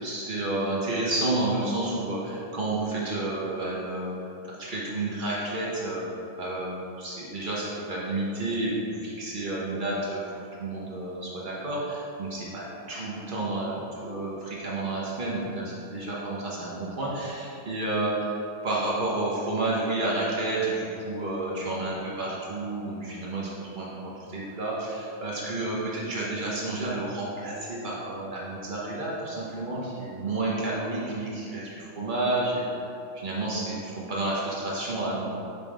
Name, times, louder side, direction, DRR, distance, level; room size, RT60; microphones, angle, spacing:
voice 1, 0.0-4.1 4.4-6.1 6.4-18.3 18.6-32.7 33.1-35.3, right 2 dB, 80° right, -6 dB, 0.4 m, -30 dB
5.4 x 4.1 x 4.8 m, 2.6 s
omnidirectional pair, 2.2 m